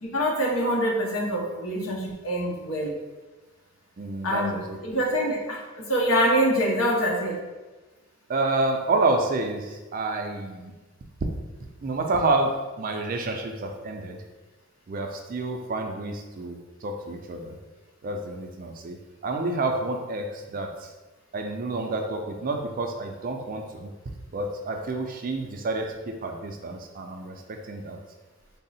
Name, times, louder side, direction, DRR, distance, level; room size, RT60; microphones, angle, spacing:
voice 1, 0.0-3.0 4.2-5.6 5.9-7.4, equal, 75° left, -1 dB, 0.8 m, -25 dB
voice 2, 4.0-4.8 8.3-10.7 11.8-12.5 12.8-14.2 14.9-17.6 18.0-19.0 19.2-20.7 21.3-23.9 24.3-28.0, right 2 dB, 40° right, 3 dB, 0.4 m, -29 dB
3.6 x 2.0 x 4.1 m, 1.2 s
head